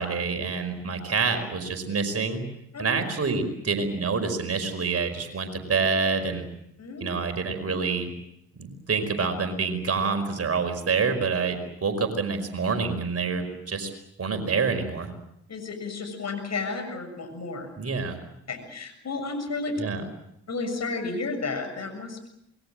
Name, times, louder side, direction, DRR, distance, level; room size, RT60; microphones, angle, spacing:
voice 1, 0.0-2.4 2.8-6.5 7.0-8.1 8.6-13.9 14.2-15.1 17.8-18.2 19.8-20.0, right 4 dB, 45° right, 6 dB, 5.2 m, -27 dB
voice 2, 6.8-7.1 15.5-17.7 18.5-19.8 20.5-22.3, left 3 dB, 45° left, 6 dB, 7.0 m, -32 dB
27.0 x 21.5 x 7.7 m, 0.79 s
hypercardioid pair, 45°, 35 cm